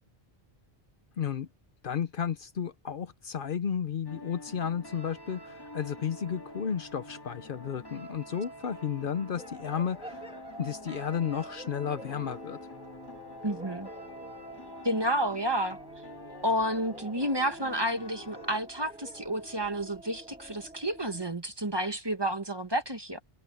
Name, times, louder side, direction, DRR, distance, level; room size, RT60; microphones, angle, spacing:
voice 1, 1.2-1.5 1.8-12.6, left 8 dB, 60° left, 0.9 m, -33 dB
sound 1, 4.1-18.6, left 1 dB, 20° left, 1.8 m, -47 dB
sound 2, 9.4-21.3, right 1 dB, 5° right, 2.2 m, -48 dB
voice 2, 13.4-13.9 14.8-15.8 16.4-23.2, equal, 25° right, 1.5 m, -30 dB
omnidirectional pair, 1.0 m